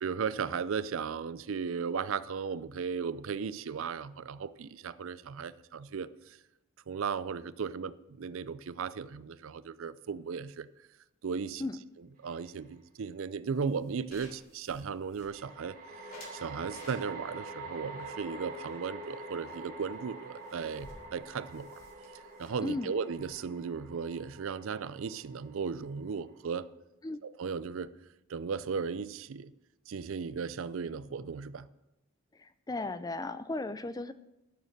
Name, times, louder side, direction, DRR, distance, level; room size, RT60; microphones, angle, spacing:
voice 1, 0.0-6.4 6.9-10.7 11.2-11.7 12.0-15.8 16.1-21.8 22.4-26.7 27.2-27.9 28.3-29.5 29.9-31.7, right 6 dB, 65° right, 0.4 m, -36 dB
sound 1, 12.3-12.4 15.3-26.6, right 2 dB, 40° right, 1.8 m, -46 dB
sound 2, 13.5-15.6 16.1-17.4 18.0-19.2 19.5-19.6 19.9-20.0 20.2-24.1, left 1 dB, 40° left, 3.2 m, -55 dB
voice 2, 22.6-23.0 27.0-27.2 32.4-34.1, left 2 dB, 15° left, 0.4 m, -36 dB
12.0 x 6.6 x 6.6 m
head